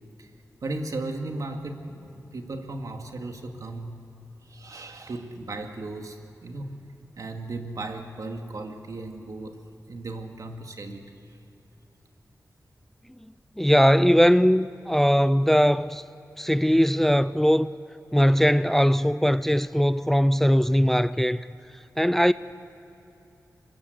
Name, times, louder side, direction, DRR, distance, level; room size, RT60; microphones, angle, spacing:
voice 1, 0.6-4.0 4.4-6.7 7.2-9.6 9.9-11.0 11.3-11.4, right 2 dB, 70° right, 2.3 m, -36 dB
voice 2, 13.6-16.0 16.4-17.7 18.1-21.5 22.0-22.3, equal, 5° left, 0.5 m, -20 dB
25.5 x 21.0 x 8.1 m
wide cardioid pair, 70°, 6 cm